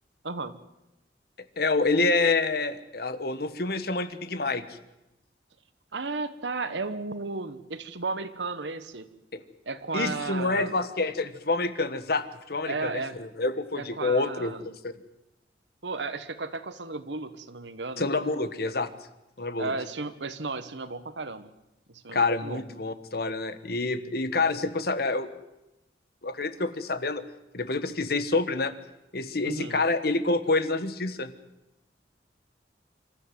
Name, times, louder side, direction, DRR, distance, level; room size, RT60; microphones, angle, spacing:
voice 1, 0.2-0.6 5.9-9.1 9.6-10.8 12.7-13.1 13.8-14.7 15.8-18.0 19.6-21.5 21.9-22.6 29.4-29.8, right 3 dB, 85° right, 11 dB, 1.3 m, -34 dB
voice 2, 1.6-4.6 9.3-9.4 9.9-14.5 14.8-14.9 18.0-18.9 19.4-19.7 22.1-25.3 26.2-27.2 27.5-28.7 29.1-31.3, left 3 dB, 60° left, 11 dB, 1.3 m, -27 dB
26.0 x 13.0 x 9.4 m, 0.93 s
head